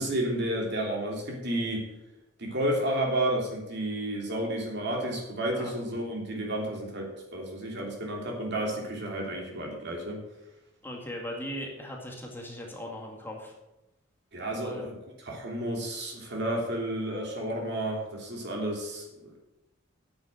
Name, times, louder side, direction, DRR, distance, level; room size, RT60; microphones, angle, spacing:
voice 1, 0.0-1.9 2.4-10.2 14.3-14.9 15.3-19.4, right 1 dB, 60° right, 0 dB, 3.1 m, -31 dB
voice 2, 10.8-13.6 14.6-14.9, left 1 dB, 10° left, -1 dB, 2.1 m, -38 dB
9.4 x 7.3 x 7.7 m, 0.94 s
head